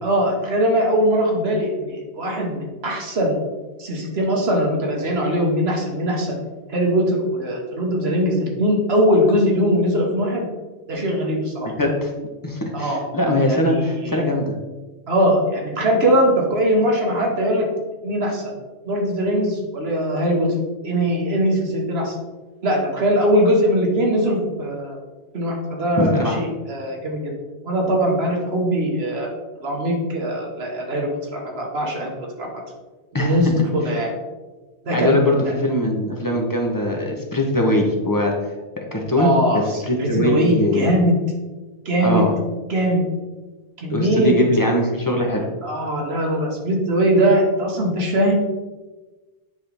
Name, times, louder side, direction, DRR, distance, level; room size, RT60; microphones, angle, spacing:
voice 1, 0.0-3.4 3.8-6.3 6.7-10.5 10.9-11.7 12.7-13.0 13.5-14.2 15.1-17.7 18.0-18.5 18.9-20.5 20.8-22.1 22.6-25.0 25.3-27.2 27.6-29.3 29.6-32.5 33.2-34.1 34.8-35.5 39.2-41.2 41.8-42.3 42.7-43.0 43.8-44.4 45.6-48.3, equal, 65° right, 0 dB, 1.5 m, -21 dB
voice 2, 11.6-12.1 12.4-14.5 26.0-26.4 33.1-33.5 34.9-40.9 42.0-42.3 43.9-45.5, left 1 dB, 20° left, 0 dB, 0.9 m, -21 dB
9.1 x 3.8 x 3.4 m, 1.2 s
omnidirectional pair, 1.1 m